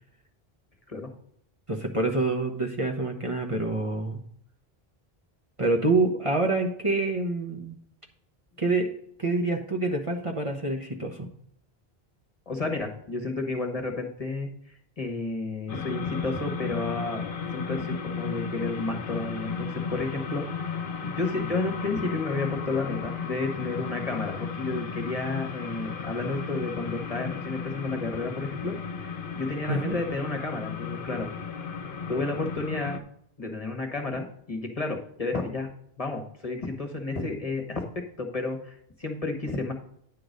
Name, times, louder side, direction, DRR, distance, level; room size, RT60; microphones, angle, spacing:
voice 1, 1.7-4.2 5.6-7.8 8.6-8.9 9.2-11.3 29.7-30.0, right 2 dB, 35° right, 1 dB, 1.0 m, -26 dB
voice 2, 12.5-14.5 15.0-20.7 21.0-31.3 32.1-33.0 33.4-35.7 36.0-39.7, left 3 dB, 35° left, 3 dB, 1.2 m, -31 dB
sound 1, 15.7-33.0, left 6 dB, 60° left, 1.0 m, -34 dB
9.7 x 3.9 x 6.4 m, 0.68 s
omnidirectional pair, 1.0 m